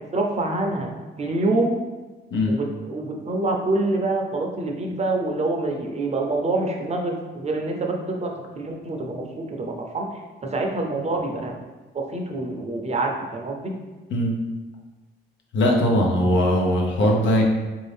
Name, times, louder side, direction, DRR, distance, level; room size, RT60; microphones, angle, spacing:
voice 1, 0.1-0.9 1.2-1.8 2.5-8.3 8.6-10.1 10.5-11.5 11.9-13.7, right 2 dB, 35° right, 1 dB, 0.6 m, -26 dB
voice 2, 15.5-17.4, left 1 dB, 70° left, 0 dB, 0.8 m, -20 dB
3.6 x 2.7 x 3.4 m, 1.2 s
cardioid pair, 90°, 20 cm